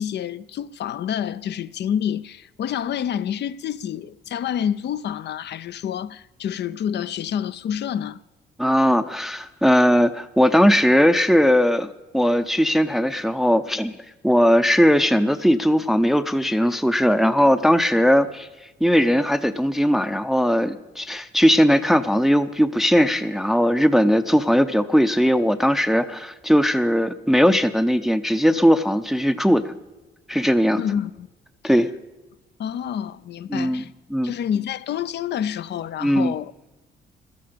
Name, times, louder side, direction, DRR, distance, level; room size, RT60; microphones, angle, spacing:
voice 1, 0.0-8.2 30.8-31.3 32.6-33.9 34.2-36.5, left 9 dB, 60° left, 0.5 m, -28 dB
voice 2, 8.6-13.9 14.2-18.5 18.8-29.7 30.3-30.8 31.6-31.9 33.5-33.8 34.1-34.3 36.0-36.3, equal, ahead, 0.6 m, -19 dB
16.0 x 13.0 x 5.1 m
cardioid pair, 90°, 20 cm